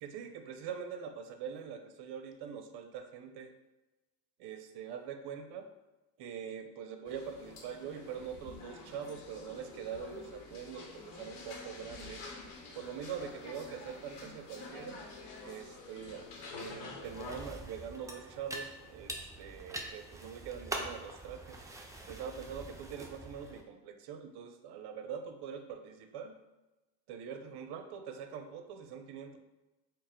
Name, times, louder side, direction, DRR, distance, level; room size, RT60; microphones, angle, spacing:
voice 1, 0.0-3.5 4.4-5.8 6.2-12.3 12.7-15.0 15.4-21.6 22.1-26.4 27.1-29.4, right 7 dB, 55° right, 7 dB, 0.6 m, -43 dB
sound 1, 7.0-17.5, left 3 dB, 80° left, 0.8 m, -48 dB
sound 2, 17.0-23.6, right 2 dB, 5° right, 0.4 m, -44 dB
4.1 x 2.0 x 3.6 m, 1.1 s
supercardioid pair, 70°, 47 cm